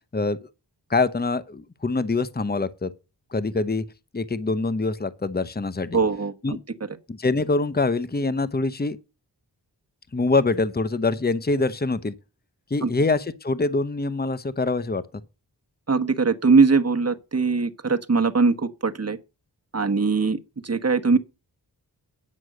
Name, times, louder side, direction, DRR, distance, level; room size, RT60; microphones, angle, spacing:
voice 1, 0.9-2.9 3.3-3.8 4.1-6.0 6.4-6.6 7.1-9.0 10.1-12.1 12.7-15.0, left 3 dB, 25° left, 0.9 m, -24 dB
voice 2, 5.9-6.6 12.8-12.9 15.9-19.2 19.7-21.2, right 4 dB, 35° right, 1.2 m, -21 dB
9.8 x 6.2 x 6.4 m
cardioid pair, 45°, 41 cm